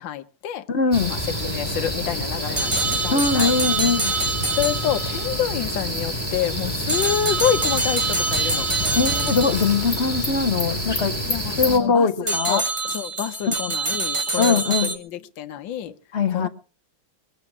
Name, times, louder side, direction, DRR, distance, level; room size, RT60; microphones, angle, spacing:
voice 1, 0.0-0.6 1.0-3.5 4.6-8.7 11.2-15.9 16.3-16.5, left 10 dB, 65° left, 1.6 m, -28 dB
voice 2, 0.7-1.1 3.1-4.1 9.0-11.2 11.6-12.6 14.4-14.9 16.1-16.5, left 5 dB, 45° left, 0.9 m, -21 dB
sound 1, 0.9-11.8, equal, 10° left, 3.9 m, -28 dB
sound 2, 2.6-5.3 6.9-9.8 12.3-15.0, right 3 dB, 25° right, 0.6 m, -25 dB
21.5 x 8.8 x 6.0 m
omnidirectional pair, 2.3 m